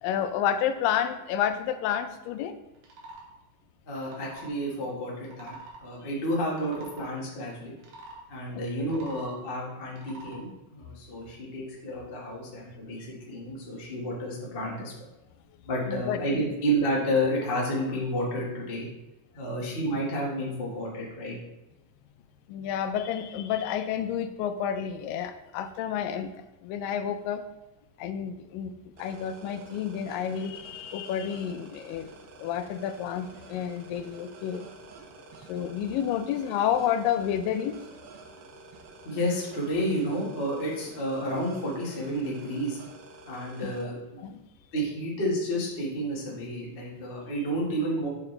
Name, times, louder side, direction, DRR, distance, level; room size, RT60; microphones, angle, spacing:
voice 1, 0.0-2.5 8.5-8.6 15.9-16.2 22.5-26.3 26.6-27.4 28.0-28.7 29.0-32.1 32.4-34.7 35.5-37.8 43.6-43.9 44.2-44.4, left 9 dB, 90° left, 10 dB, 2.2 m, -30 dB
sound 1, 2.7-3.3 3.9-4.5 5.2-5.8 6.5-7.1 7.8-8.2 8.8-9.4 9.9-10.4, right 2 dB, 65° right, 2.0 m, -46 dB
voice 2, 3.8-7.7 8.3-14.9 15.6-18.9 19.3-21.4 39.0-42.8 43.2-44.2 44.7-48.1, equal, 55° left, -5 dB, 0.6 m, -30 dB
sound 2, 29.0-43.8, right 3 dB, 90° right, 1.5 m, -49 dB
6.9 x 4.8 x 3.2 m, 0.99 s
omnidirectional pair, 3.9 m